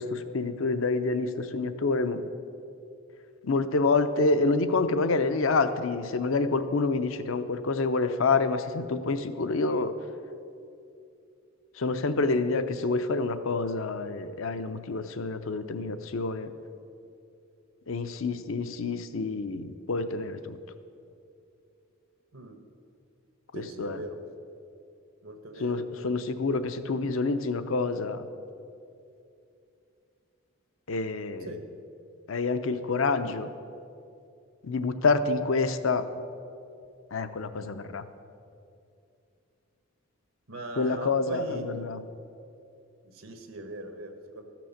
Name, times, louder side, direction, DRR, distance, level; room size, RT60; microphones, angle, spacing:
voice 1, 0.0-2.2 3.4-9.9 11.8-16.5 17.9-20.6 23.5-24.0 25.6-28.2 30.9-31.5 32.3-33.5 34.6-36.1 37.1-38.0 40.8-42.0, left 3 dB, 75° left, 11 dB, 0.6 m, -27 dB
voice 2, 23.5-24.2 25.2-25.8 31.4-31.6 40.5-41.6 43.0-44.4, right 2 dB, 85° right, 6 dB, 1.2 m, -40 dB
13.0 x 6.0 x 7.1 m, 2.6 s
head